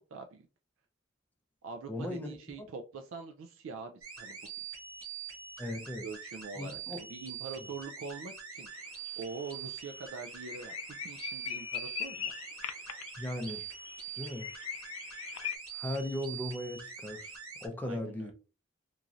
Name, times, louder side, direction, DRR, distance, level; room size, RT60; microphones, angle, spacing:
voice 1, 0.1-0.5 1.6-4.5 6.0-8.7 9.2-10.7 11.0-12.3 17.8-18.3, right 4 dB, 70° right, 0.3 m, -44 dB
voice 2, 1.9-2.7 5.6-6.1 6.6-7.0 13.2-13.7 14.1-14.5 15.7-17.3 17.6-18.3, left 1 dB, 10° left, 0.4 m, -37 dB
sound 1, 4.0-17.7, right 7 dB, 90° right, 1.1 m, -44 dB
sound 2, 8.8-9.1 9.4-9.5 9.9-10.0 10.3-15.6, left 9 dB, 85° left, 0.4 m, -40 dB
3.0 x 2.6 x 2.4 m
head